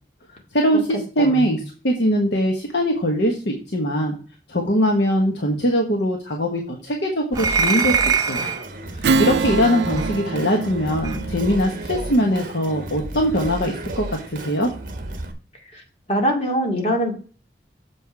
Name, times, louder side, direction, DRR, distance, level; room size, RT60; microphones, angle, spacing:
voice 1, 0.5-4.1 4.5-8.5 9.2-14.7, equal, 80° left, 1 dB, 1.3 m, -21 dB
voice 2, 1.2-1.6 15.7-15.8 16.1-17.1, equal, 35° left, 0 dB, 2.3 m, -23 dB
sound 1, 7.3-8.7 10.0-10.1 11.0-11.2, right 6 dB, 20° right, 0.6 m, -22 dB
Singing, 7.3-15.3, right 1 dB, 50° right, 1.2 m, -33 dB
Strum, 9.0-13.9, right 4 dB, 75° right, 0.4 m, -27 dB
7.3 x 5.7 x 4.7 m, 0.39 s
head